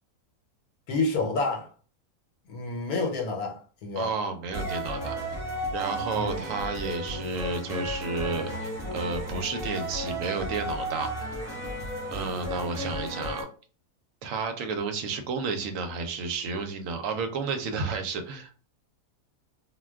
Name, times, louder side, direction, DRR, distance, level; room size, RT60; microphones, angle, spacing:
voice 1, 0.9-1.7 2.5-4.1 6.2-6.4, left 3 dB, 80° left, 1.2 m, -29 dB
voice 2, 4.0-5.2 5.7-11.4 12.1-13.5 14.2-18.6, right 4 dB, 70° right, 0.9 m, -32 dB
sound 1, 4.5-13.4, equal, ahead, 1.0 m, -33 dB
2.5 x 2.2 x 3.4 m
omnidirectional pair, 1.6 m